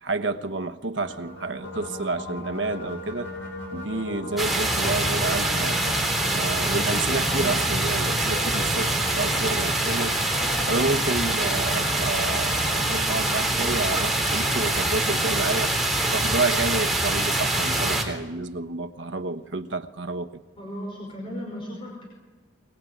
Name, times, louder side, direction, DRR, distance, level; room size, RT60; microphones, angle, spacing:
voice 1, 0.0-3.3 3.7-5.8 6.3-10.2 10.7-15.7 16.1-20.3, right 3 dB, 70° right, 9 dB, 1.2 m, -29 dB
sound 1, 0.9-17.2, left 1 dB, 75° left, 6.6 m, -39 dB
sound 2, 4.4-18.0, right 1 dB, ahead, 3.6 m, -24 dB
voice 2, 7.0-7.5 20.6-22.1, equal, 25° left, -1 dB, 5.4 m, -36 dB
22.0 x 21.5 x 9.3 m, 1.2 s
head